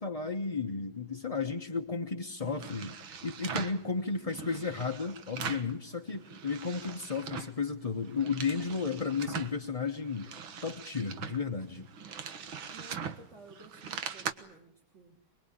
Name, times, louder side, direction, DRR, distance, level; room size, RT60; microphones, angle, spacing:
voice 1, 0.0-2.9 3.2-11.9, left 5 dB, 30° left, 4 dB, 0.7 m, -33 dB
sound 1, 2.4-3.8 4.3-5.7 6.1-7.6 8.0-9.5 10.0-14.3, right 7 dB, 70° right, 2.3 m, -41 dB
voice 2, 4.2-4.7 12.7-15.2, right 4 dB, 35° right, 2 dB, 3.4 m, -54 dB
24.0 x 23.5 x 8.8 m, 0.67 s
omnidirectional pair, 2.3 m